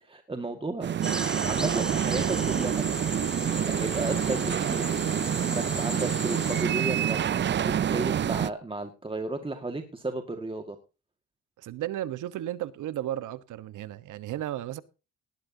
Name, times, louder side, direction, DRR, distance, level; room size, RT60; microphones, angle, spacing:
voice 1, 0.0-0.9 1.5-2.9 3.7-4.9 5.4-10.8, right 2 dB, 15° right, 1.8 m, -33 dB
sound 1, 0.8-8.5, right 9 dB, 40° right, 0.5 m, -27 dB
sound 2, 1.0-6.6, equal, ahead, 2.7 m, -35 dB
voice 2, 11.6-14.8, right 12 dB, 80° right, 1.1 m, -34 dB
18.5 x 12.0 x 2.8 m
cardioid pair, 90°, 30 cm